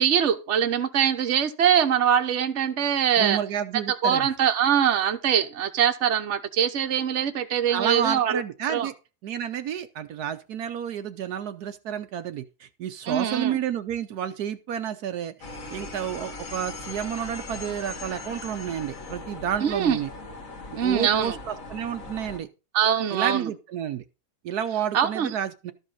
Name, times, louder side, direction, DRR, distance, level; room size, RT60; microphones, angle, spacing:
voice 1, 0.0-3.4 4.0-8.4 8.7-8.9 13.1-13.6 19.6-20.0 20.7-21.3 22.7-23.5 24.9-25.3, right 8 dB, 50° right, 1.2 m, -23 dB
voice 2, 3.2-4.3 7.7-8.9 9.2-15.3 15.7-20.1 20.8-22.5 23.1-24.0 24.4-25.7, right 9 dB, 75° right, 1.3 m, -30 dB
sound 1, 15.4-22.4, left 3 dB, 55° left, 2.0 m, -39 dB
13.0 x 5.5 x 5.6 m
omnidirectional pair, 1.7 m